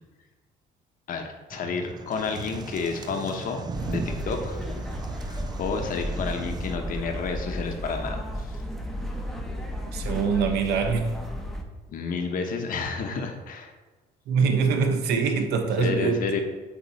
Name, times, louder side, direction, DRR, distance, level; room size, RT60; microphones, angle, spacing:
voice 1, 1.1-4.6 5.2-8.6 11.9-13.7 15.8-16.4, left 4 dB, 55° left, 4 dB, 0.9 m, -30 dB
sound 1, 1.5-6.8, right 4 dB, 25° right, 0.3 m, -38 dB
sound 2, 3.7-11.6, equal, ahead, 0.7 m, -33 dB
voice 2, 9.9-11.1 14.3-16.2, right 5 dB, 85° right, 5 dB, 0.9 m, -24 dB
8.2 x 3.0 x 4.1 m, 1.3 s
cardioid pair, 110°, 17 cm